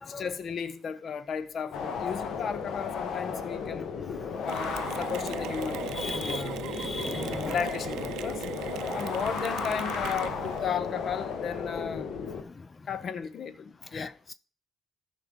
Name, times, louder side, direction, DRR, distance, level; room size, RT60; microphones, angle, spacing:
voice 1, 0.1-3.9 4.4-5.9 6.2-6.7 7.5-8.4 8.9-12.1 12.9-14.2, left 7 dB, 55° left, 0.9 m, -34 dB
sound 1, 1.7-12.4, left 6 dB, 75° left, 1.3 m, -34 dB
voice 2, 4.1-4.5 5.9-7.5 12.4-12.7 13.9-14.3, left 3 dB, 30° left, 0.4 m, -38 dB
Mechanisms, 4.5-10.7, right 13 dB, 85° right, 0.4 m, -38 dB
13.5 x 5.6 x 3.8 m
cardioid pair, 85°, 0 cm